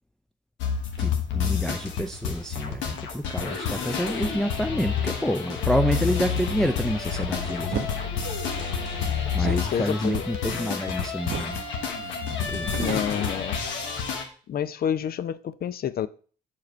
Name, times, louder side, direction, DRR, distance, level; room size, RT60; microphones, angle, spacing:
sound 1, 0.6-14.2, left 6 dB, 70° left, 1.2 m, -29 dB
voice 1, 1.0-7.9 9.3-11.6 12.3-12.7, equal, ahead, 0.5 m, -28 dB
sound 2, 7.7-8.0 9.3-10.9 11.3-11.6 11.9-12.0 12.4-13.9, right 11 dB, 55° right, 0.5 m, -35 dB
voice 2, 9.3-10.2 12.8-13.6 14.5-16.1, left 9 dB, 50° left, 0.5 m, -29 dB
7.3 x 4.8 x 4.5 m
hypercardioid pair, 50°, 20 cm